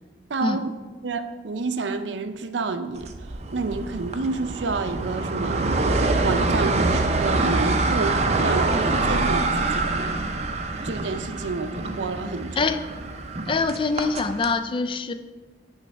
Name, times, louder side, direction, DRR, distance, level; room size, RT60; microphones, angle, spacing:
voice 1, 0.3-0.7 1.0-10.2 10.8-12.7, right 4 dB, 90° right, 8 dB, 0.6 m, -29 dB
sound 1, 3.0-14.5, right 2 dB, 35° right, 0.5 m, -25 dB
voice 2, 13.5-15.1, left 4 dB, 30° left, 10 dB, 0.3 m, -24 dB
9.8 x 3.3 x 5.3 m, 1.3 s
head